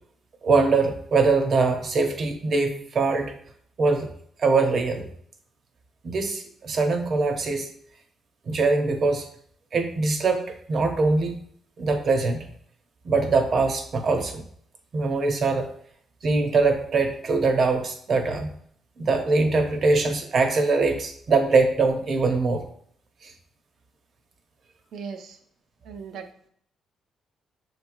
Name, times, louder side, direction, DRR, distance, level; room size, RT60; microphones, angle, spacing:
voice 1, 0.4-3.4 3.8-4.1 4.4-5.1 6.0-7.7 8.5-9.2 9.7-11.3 11.8-12.5 13.0-14.4 14.9-15.7 16.2-18.5 19.0-22.6 23.2-23.3, right 3 dB, 50° right, 5 dB, 0.9 m, -22 dB
voice 2, 24.9-25.4 25.8-26.5, right 6 dB, 70° right, 6 dB, 0.6 m, -38 dB
6.5 x 3.1 x 2.6 m, 0.62 s
cardioid pair, 90°, 0 cm